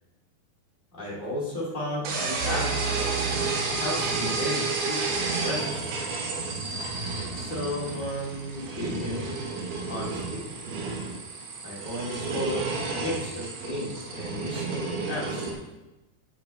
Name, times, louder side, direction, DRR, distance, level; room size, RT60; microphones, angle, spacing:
voice 1, 0.9-3.1 3.8-6.0 7.1-9.3 9.9-10.5 11.6-15.5, equal, 15° left, -6 dB, 1.9 m, -33 dB
sound 1, 2.0-15.5, right 3 dB, 85° right, 3.3 m, -31 dB
sound 2, 2.4-6.7 7.0-7.1 7.7-7.8, right 6 dB, 45° right, 1.0 m, -37 dB
10.5 x 5.8 x 3.4 m, 1.0 s
omnidirectional pair, 4.3 m